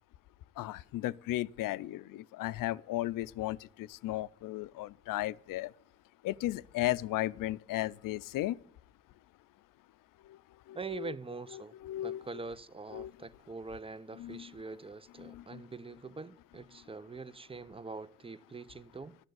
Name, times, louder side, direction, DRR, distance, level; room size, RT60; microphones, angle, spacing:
voice 1, 0.6-5.7 6.2-8.6 10.2-10.4 10.7-11.1 11.8-12.2 12.9-13.1 14.2-14.4 15.2-15.6, left 15 dB, 80° left, 0.5 m, -35 dB
voice 2, 10.7-11.8 12.0-19.2, right 4 dB, 15° right, 0.5 m, -44 dB
12.5 x 6.6 x 9.2 m
supercardioid pair, 40°, 32 cm